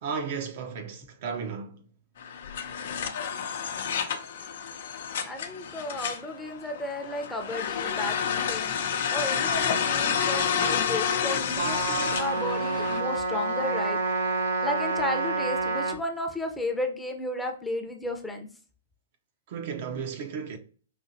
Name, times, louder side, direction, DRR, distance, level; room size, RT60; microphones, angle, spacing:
voice 1, 0.0-1.8 19.5-20.6, right 6 dB, 50° right, 0.7 m, -34 dB
sound 1, 2.2-13.0, left 7 dB, 65° left, 0.7 m, -29 dB
voice 2, 5.2-14.0 14.6-18.5, left 1 dB, 5° left, 0.7 m, -33 dB
Trumpet, 11.6-16.0, right 3 dB, 80° right, 1.2 m, -28 dB
5.0 x 2.7 x 2.7 m
hypercardioid pair, 135°, 0 cm